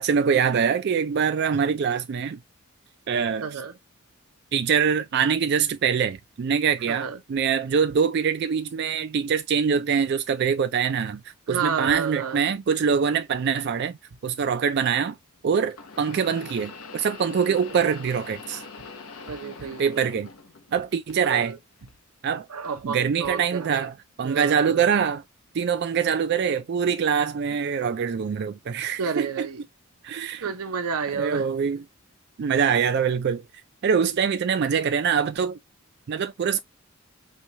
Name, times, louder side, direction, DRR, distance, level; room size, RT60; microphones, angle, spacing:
voice 1, 0.0-2.4 3.1-3.6 4.5-11.2 11.5-14.0 14.2-15.2 15.4-18.6 19.8-20.3 20.7-21.6 22.2-22.5 22.8-25.2 25.5-29.5 30.0-30.5 31.2-31.8 32.4-33.4 33.8-35.6 36.1-36.6, right 6 dB, 50° right, 0.3 m, -24 dB
voice 2, 3.4-3.8 6.9-7.2 11.5-12.4 17.4-17.8 18.5-18.7 19.3-19.9 21.2-21.6 22.5-23.9 24.2-24.9 29.0-29.6 30.4-31.5, right 6 dB, 85° right, 0.6 m, -31 dB
sound 1, 13.6-13.7 15.7-20.8 21.1-21.9 22.6-22.8 23.8-23.9, left 4 dB, 80° left, 0.8 m, -43 dB
4.4 x 2.3 x 2.7 m
head